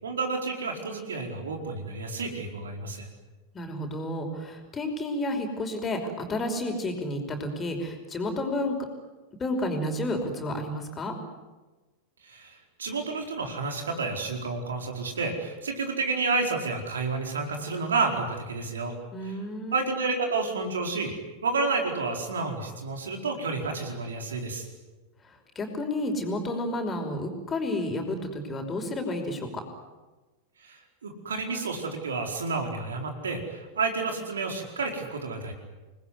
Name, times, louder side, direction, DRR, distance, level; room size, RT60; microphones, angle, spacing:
voice 1, 0.0-3.1 12.2-18.9 19.2-19.3 19.7-21.1 21.4-24.6 30.6-35.5, right 3 dB, 70° right, 3 dB, 4.7 m, -30 dB
voice 2, 3.5-8.8 9.4-11.1 19.1-19.9 25.6-29.5, left 1 dB, 20° left, 4 dB, 5.4 m, -31 dB
28.5 x 20.5 x 9.8 m, 1.2 s
figure-of-eight pair, 90°, 0 cm